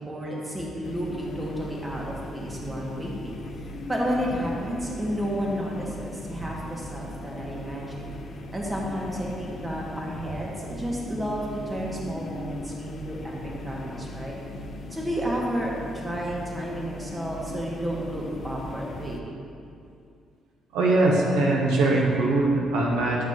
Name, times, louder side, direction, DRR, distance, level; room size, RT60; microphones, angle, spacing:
voice 1, 0.0-8.1 8.5-13.4 13.6-14.4 14.9-19.4, equal, 25° right, -3 dB, 1.6 m, -31 dB
sound 1, 0.8-19.2, left 2 dB, 60° left, 0.6 m, -38 dB
voice 2, 20.7-23.2, right 2 dB, 80° right, -2 dB, 0.7 m, -21 dB
8.5 x 6.0 x 2.9 m, 2.4 s
hypercardioid pair, 50°, 0 cm